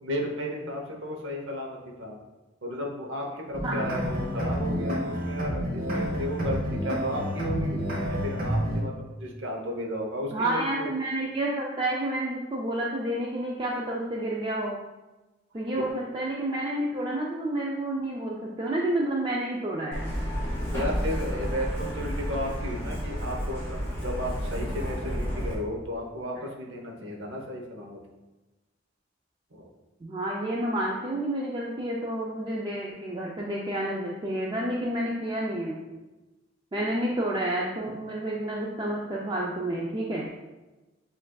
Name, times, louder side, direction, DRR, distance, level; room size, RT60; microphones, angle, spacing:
voice 1, 0.0-2.2 2.6-7.8 8.1-10.9 15.8-15.9 20.7-28.0, equal, 75° right, 1 dB, 0.8 m, -34 dB
sound 1, 3.5-8.8, equal, 50° right, 0.9 m, -29 dB
voice 2, 10.3-14.8 15.5-20.0 30.0-35.8 36.7-40.3, right 1 dB, 25° right, -3 dB, 0.4 m, -30 dB
Truck, 19.9-25.5, equal, 15° left, 1.4 m, -31 dB
7.3 x 2.5 x 2.2 m, 1.1 s
head